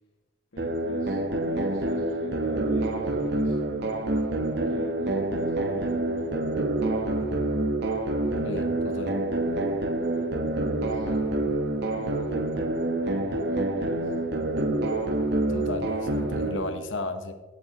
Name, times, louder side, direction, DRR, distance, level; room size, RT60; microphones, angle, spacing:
voice 1, 0.5-1.2 1.5-4.0 4.6-6.2 10.1-11.2 11.9-12.5 13.0-14.1, left 1 dB, 85° left, -5 dB, 1.9 m, -46 dB
sound 1, 0.6-16.6, right 2 dB, 55° right, 0.9 m, -27 dB
voice 2, 8.4-9.1 15.5-17.3, left 2 dB, 70° left, 8 dB, 1.0 m, -34 dB
16.5 x 7.4 x 2.9 m, 1.2 s
head